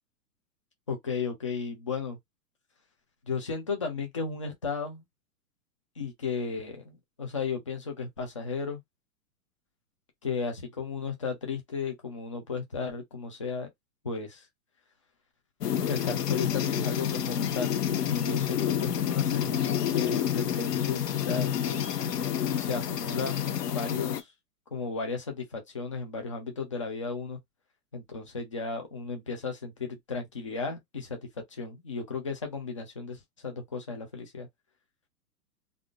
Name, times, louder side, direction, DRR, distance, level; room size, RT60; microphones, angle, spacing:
voice 1, 0.9-2.2 3.3-5.0 6.0-8.8 10.2-13.7 14.0-14.4 15.8-17.8 18.1-21.9 22.6-24.3 24.7-27.4 27.9-31.2 31.5-34.5, left 5 dB, 20° left, 0.4 m, -34 dB
sound 1, 15.6-24.2, left 9 dB, 75° left, 1.0 m, -29 dB
3.4 x 2.4 x 2.4 m
hypercardioid pair, 155°, 48 cm